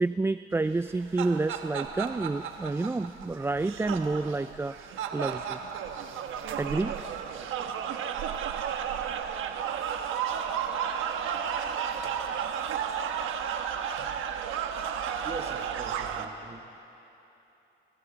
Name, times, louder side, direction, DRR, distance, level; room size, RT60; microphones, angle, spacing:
voice 1, 0.0-5.6 6.6-7.0, right 3 dB, 10° right, 12 dB, 0.4 m, -29 dB
sound 1, 0.8-16.2, right 8 dB, 85° right, 1.3 m, -33 dB
voice 2, 15.2-16.8, right 3 dB, 30° right, 5 dB, 1.4 m, -42 dB
30.0 x 24.5 x 4.0 m, 3.0 s
cardioid pair, 90°, 20 cm